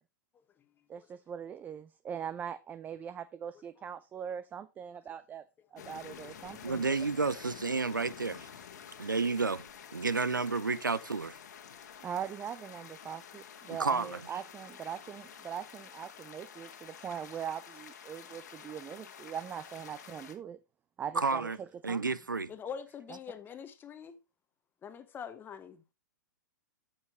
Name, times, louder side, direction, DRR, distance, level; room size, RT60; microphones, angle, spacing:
voice 1, 0.9-5.4 5.7-6.9 12.0-20.6 21.0-22.1 23.1-23.2, right 8 dB, 15° right, 0.4 m, -41 dB
sound 1, 5.8-20.3, left 8 dB, 60° left, 1.5 m, -50 dB
voice 2, 6.6-8.5 9.0-9.7 9.9-11.4 13.8-14.2 21.2-21.6 21.8-22.5, right 4 dB, 85° right, 0.6 m, -31 dB
voice 3, 22.5-24.2 24.8-25.9, left 7 dB, 20° left, 1.0 m, -44 dB
9.1 x 7.4 x 3.0 m
figure-of-eight pair, 105°, 10 cm